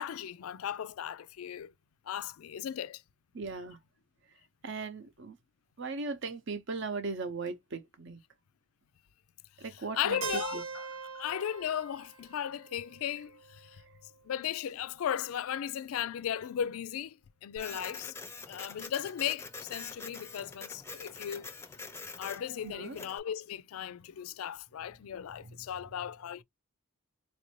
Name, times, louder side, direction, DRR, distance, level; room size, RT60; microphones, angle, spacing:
voice 1, 0.0-1.7 2.1-3.0 9.9-10.9 11.1-13.8 14.2-18.1 18.5-21.5 22.2-26.4, left 9 dB, 75° left, 0.4 m, -36 dB
voice 2, 3.3-3.8 4.6-5.4 5.8-8.2 9.6-10.2 10.5-10.6 17.7-17.8 22.6-23.0, right 4 dB, 55° right, 0.7 m, -38 dB
Keyboard (musical), 10.2-14.1, right 5 dB, 85° right, 0.9 m, -42 dB
Printer, 17.6-23.2, left 4 dB, 10° left, 0.5 m, -45 dB
4.1 x 2.5 x 3.1 m
head